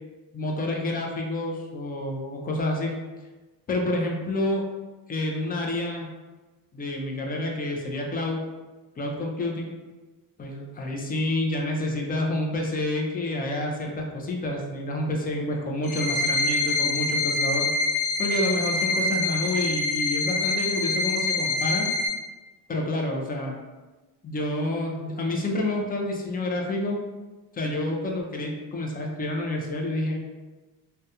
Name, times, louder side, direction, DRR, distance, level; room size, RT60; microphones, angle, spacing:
voice 1, 0.3-2.9 3.7-4.6 5.1-6.1 6.7-8.4 9.0-9.7 10.4-17.7 18.2-21.9 22.7-23.6 24.2-27.0 27.5-30.2, left 1 dB, 25° left, 0 dB, 0.4 m, -28 dB
sound 1, 15.8-22.1, left 3 dB, 75° left, 0.8 m, -25 dB
2.3 x 2.1 x 2.7 m, 1.2 s
cardioid pair, 110°, 42 cm